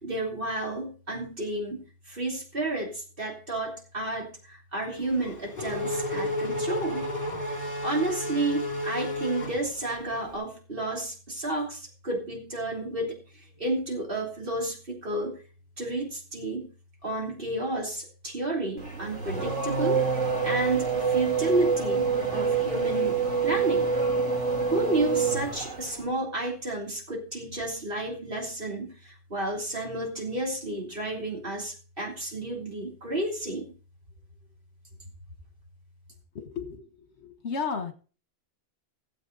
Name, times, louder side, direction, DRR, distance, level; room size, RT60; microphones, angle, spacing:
voice 1, 0.0-7.1 7.8-13.2 13.6-15.4 15.8-16.7 17.0-20.0 20.4-23.9 24.7-33.7, right 2 dB, 50° right, 0 dB, 3.5 m, -31 dB
Race car auto racing / Accelerating revving vroom, 5.0-10.2, left 1 dB, 50° left, 3.4 m, -32 dB
Race car auto racing / Accelerating revving vroom 2, 18.8-26.0, right 5 dB, 85° right, 3.5 m, -26 dB
voice 2, 36.3-36.8 37.2-37.9, left 5 dB, 65° left, 7 dB, 1.7 m, -32 dB
16.5 x 7.8 x 4.0 m, 0.37 s
omnidirectional pair, 1.2 m